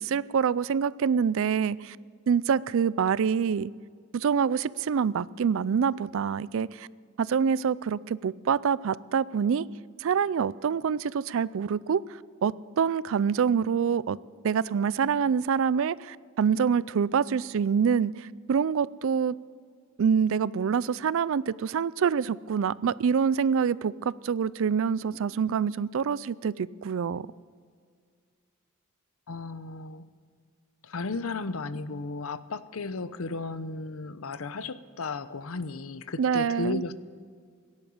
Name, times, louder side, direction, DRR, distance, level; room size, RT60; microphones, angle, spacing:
voice 1, 0.0-2.0 2.3-3.7 4.1-6.9 7.2-9.7 10.0-12.0 12.4-14.2 14.4-19.3 20.0-27.3 36.2-36.8, right 6 dB, 65° right, 20 dB, 0.4 m, -26 dB
voice 2, 29.3-30.0 30.8-36.9, left 3 dB, 75° left, 14 dB, 0.7 m, -34 dB
17.0 x 10.5 x 7.0 m, 2.1 s
head